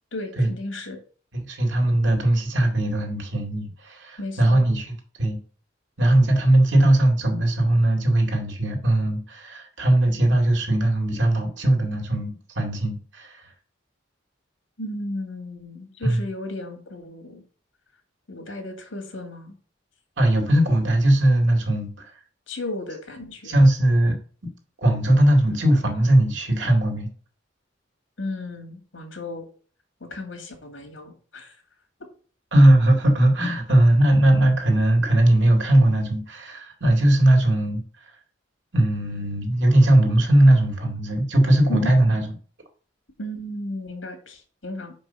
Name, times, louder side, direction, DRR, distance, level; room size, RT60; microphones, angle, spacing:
voice 1, 0.1-1.0 4.2-4.6 14.8-17.4 18.3-19.5 22.5-23.5 28.2-29.5 30.0-31.6 41.7-41.9 43.2-44.9, left 1 dB, 85° left, 5 dB, 2.3 m, -34 dB
voice 2, 1.3-4.9 5.2-5.4 6.0-13.5 16.0-16.2 20.2-22.1 23.4-24.2 24.8-27.1 32.5-38.1 38.7-42.3, right 1 dB, 65° right, 3 dB, 2.3 m, -19 dB
5.8 x 5.4 x 5.7 m, 0.41 s
head